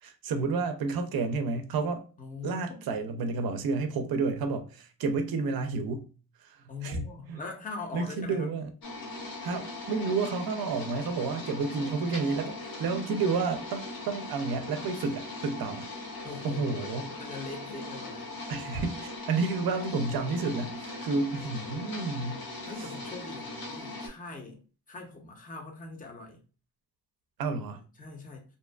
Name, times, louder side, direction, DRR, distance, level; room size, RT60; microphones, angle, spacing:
voice 1, 0.0-2.0 2.4-6.1 6.4-7.4 7.9-8.7 9.4-15.9 16.4-17.1 18.5-22.9 27.4-27.8, right 4 dB, 65° right, 0.5 m, -31 dB
voice 2, 2.2-2.9 6.7-8.5 16.2-18.3 21.0-21.2 22.7-26.4 28.0-28.4, left 3 dB, 20° left, 0.6 m, -42 dB
sound 1, 8.8-24.1, left 2 dB, 55° left, 0.8 m, -40 dB
2.6 x 2.3 x 2.2 m
cardioid pair, 120°, 40 cm